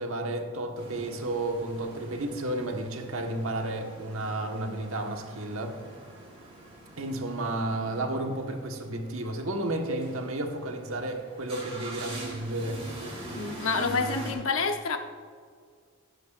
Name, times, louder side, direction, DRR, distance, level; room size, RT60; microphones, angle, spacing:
voice 1, 0.0-5.8 7.0-12.8, right 1 dB, 70° right, 3 dB, 1.4 m, -32 dB
sound 1, 0.8-14.3, right 2 dB, 30° right, 3.3 m, -44 dB
voice 2, 13.3-15.0, left 4 dB, 65° left, 5 dB, 0.9 m, -28 dB
17.0 x 10.5 x 2.5 m, 2.1 s
head